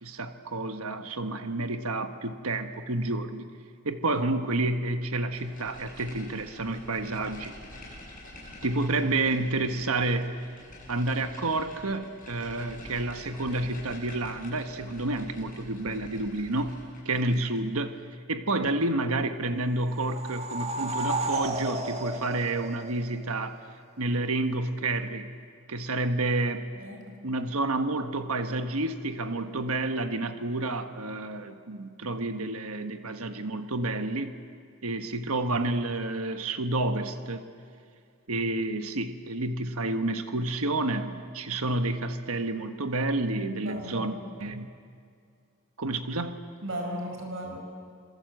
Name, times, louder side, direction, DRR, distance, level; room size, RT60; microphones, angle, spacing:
voice 1, 0.0-3.5 3.8-7.5 8.6-10.4 10.9-16.8 17.0-18.0 18.3-23.6 24.0-25.3 25.7-26.7 27.2-34.4 34.8-37.4 38.3-44.1 44.4-44.7 45.8-46.4, right 2 dB, 80° right, 8 dB, 1.4 m, -29 dB
sound 1, 5.3-17.7, left 1 dB, 40° left, 7.9 m, -47 dB
sound 2, 19.8-23.4, right 2 dB, 30° right, 1.8 m, -33 dB
voice 2, 43.6-44.1 46.6-47.6, right 1 dB, 55° right, 1 dB, 4.9 m, -35 dB
27.0 x 22.5 x 8.0 m, 2.3 s
head